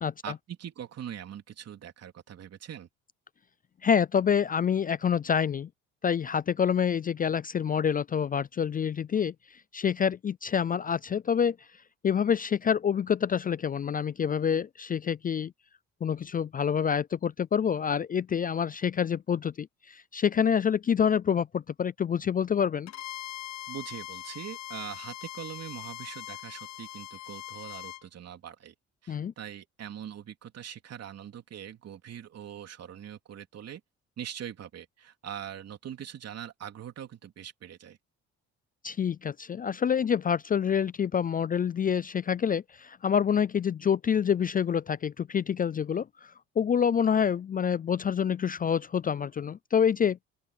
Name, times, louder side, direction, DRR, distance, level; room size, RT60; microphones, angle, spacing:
voice 1, 0.2-2.9 23.7-28.7 29.0-33.8 34.2-38.0, right 9 dB, 55° right, 3.4 m, -42 dB
voice 2, 3.8-5.7 6.0-9.3 9.7-11.6 12.0-15.5 16.0-22.9 29.1-29.3 38.8-46.1 46.6-50.2, left 7 dB, 30° left, 0.4 m, -27 dB
Bowed string instrument, 22.9-28.0, left 14 dB, 65° left, 0.8 m, -41 dB
open air
cardioid pair, 80°, 29 cm